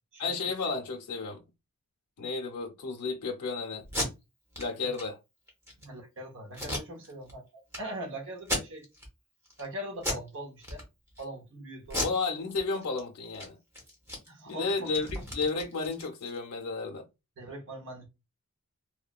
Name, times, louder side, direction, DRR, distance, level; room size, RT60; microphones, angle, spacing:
voice 1, 0.2-1.4 2.2-3.8 4.6-5.2 12.0-13.6 14.5-17.1, left 4 dB, 90° left, 0.5 m, -32 dB
Packing tape duct tape, 3.8-4.1 4.5-4.6 4.9-5.0 5.5-5.8 6.5-7.3 7.7-7.8 8.4-9.1 9.4-9.7 10.0-10.3 10.6-11.2 11.8-13.0 13.3-13.5 13.7-16.4, left 1 dB, 10° right, 0.8 m, -35 dB
voice 2, 5.8-7.5 7.8-8.9 9.6-10.8 11.2-12.1 14.3-14.9 17.4-18.1, right 1 dB, 60° right, 0.9 m, -41 dB
3.0 x 2.1 x 2.3 m
head